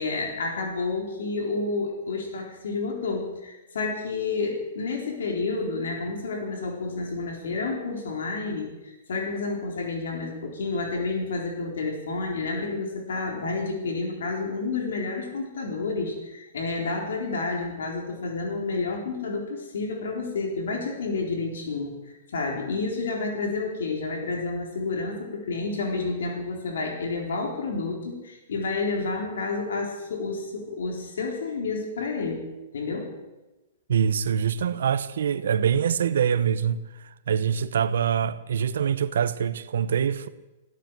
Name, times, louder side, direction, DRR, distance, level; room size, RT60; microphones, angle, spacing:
voice 1, 0.0-32.5 32.7-33.2, left 3 dB, 90° left, 3.9 m, -30 dB
voice 2, 33.9-36.8 37.3-40.3, right 8 dB, 85° right, 0.9 m, -24 dB
16.0 x 12.0 x 7.5 m
hypercardioid pair, 150°, 0 cm